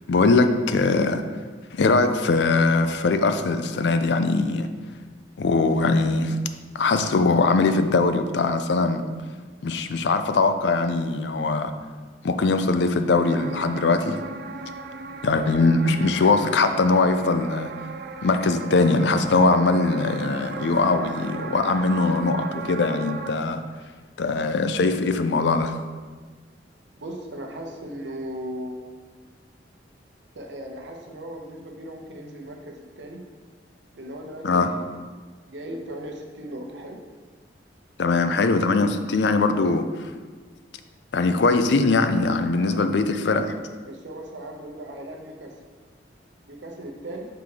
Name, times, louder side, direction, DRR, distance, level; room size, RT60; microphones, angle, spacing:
voice 1, 0.1-1.2 1.7-4.7 5.4-6.4 6.7-9.0 9.6-11.7 12.2-14.2 15.2-17.7 18.2-23.6 24.2-25.8 34.4-34.7 38.0-40.1 41.1-43.5, left 3 dB, 65° left, 8 dB, 0.4 m, -21 dB
sound 1, 13.1-23.3, right 4 dB, 55° right, 0.3 m, -36 dB
voice 2, 15.8-16.4 27.0-28.9 30.3-33.2 33.9-34.9 35.5-37.0 42.6-43.5 43.9-45.5 46.5-47.3, right 1 dB, 75° right, 2 dB, 0.8 m, -37 dB
5.8 x 3.5 x 4.8 m, 1.4 s
head